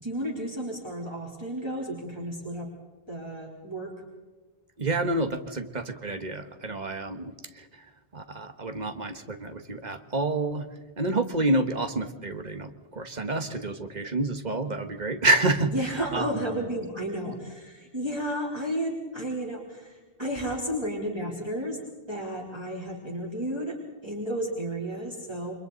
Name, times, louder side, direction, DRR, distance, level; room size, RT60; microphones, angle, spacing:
voice 1, 0.0-2.7 3.1-3.9 15.7-21.8 22.1-23.8 24.0-25.5, right 1 dB, 25° right, -3 dB, 3.6 m, -32 dB
voice 2, 4.8-10.7 11.0-16.4, right 2 dB, 40° right, 8 dB, 1.7 m, -29 dB
29.5 x 25.5 x 4.1 m, 1.3 s
omnidirectional pair, 1.1 m